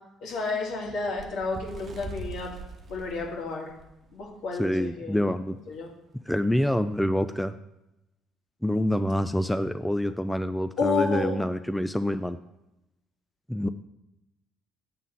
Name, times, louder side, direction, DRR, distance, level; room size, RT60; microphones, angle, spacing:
voice 1, 0.2-2.5 2.9-3.7 4.1-5.1 5.7-5.9 10.8-11.4, left 4 dB, 65° left, -2 dB, 2.0 m, -30 dB
Bird, 1.1-4.3 4.8-4.9 5.2-5.5 6.3-6.4, right 2 dB, 45° right, 0.9 m, -42 dB
voice 2, 4.6-5.6 6.3-7.5 8.6-12.4 13.5-13.7, left 1 dB, 5° left, 10 dB, 0.3 m, -26 dB
8.0 x 3.7 x 5.8 m, 0.90 s
hypercardioid pair, 55°, 0 cm